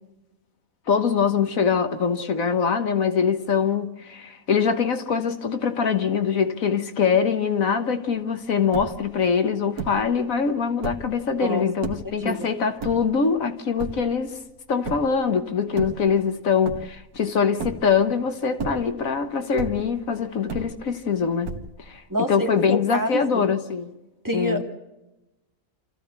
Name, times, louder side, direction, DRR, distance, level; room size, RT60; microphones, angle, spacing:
voice 1, 0.9-14.4 14.7-21.5 21.9-23.9 24.3-24.6, left 6 dB, 70° left, 1.6 m, -23 dB
sound 1, 8.3-8.4 8.5-9.2 9.8-10.2 10.7-11.2 11.8-12.2 12.8-13.4 13.8-14.3 14.8-15.2 15.7-16.4 16.7-17.2 17.6-18.1 18.5-19.1 19.6-20.1 20.5-21.1 21.4-22.0, right 5 dB, 85° right, 1.8 m, -34 dB
voice 2, 22.1-23.4 24.2-24.6, equal, 15° right, 2.1 m, -27 dB
27.0 x 14.5 x 8.2 m
omnidirectional pair, 1.5 m